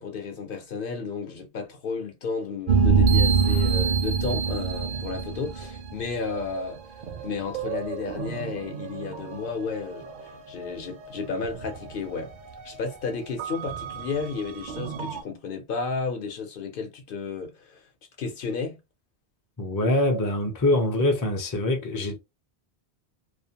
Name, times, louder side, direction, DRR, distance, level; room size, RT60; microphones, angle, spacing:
voice 1, 0.0-12.3 12.6-17.8 18.2-18.8, left 4 dB, 60° left, 0.8 m, -33 dB
sound 1, 2.7-6.7 7.0-10.2 10.6-10.8 11.2-12.2 12.6-12.7 13.4-15.2, right 5 dB, 55° right, 0.6 m, -26 dB
voice 2, 19.6-22.2, left 1 dB, 30° left, 0.4 m, -24 dB
2.4 x 2.1 x 2.7 m
omnidirectional pair, 1.1 m